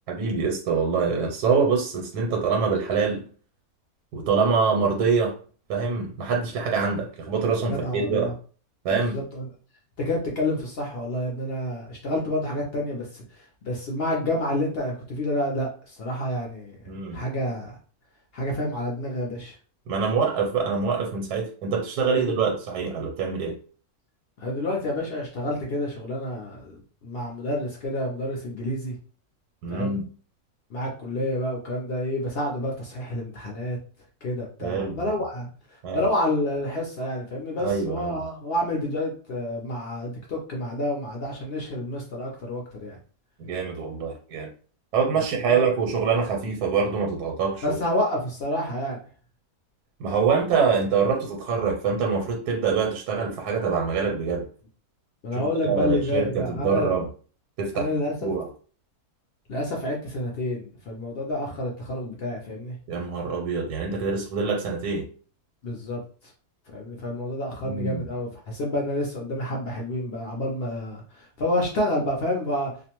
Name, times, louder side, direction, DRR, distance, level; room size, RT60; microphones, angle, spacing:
voice 1, 0.1-3.3 4.1-5.3 5.7-8.3 8.8-9.2 16.9-17.2 19.9-23.5 29.6-30.0 34.6-35.0 35.8-36.0 37.6-38.2 43.4-44.5 44.9-47.8 50.0-54.5 55.3-57.1 57.6-57.9 58.2-58.5 62.9-65.1 67.6-68.0, right 5 dB, 85° right, 1.1 m, -25 dB
voice 2, 7.6-8.3 8.9-9.5 10.0-13.2 13.6-17.7 18.3-19.5 22.2-22.3 24.4-28.9 29.7-29.9 30.7-33.8 34.2-35.5 35.9-43.0 45.1-45.7 47.6-49.0 55.2-56.9 57.7-58.3 59.5-62.7 65.6-66.0 66.7-72.7, left 1 dB, 60° left, 0.6 m, -29 dB
2.4 x 2.1 x 2.9 m
omnidirectional pair, 1.6 m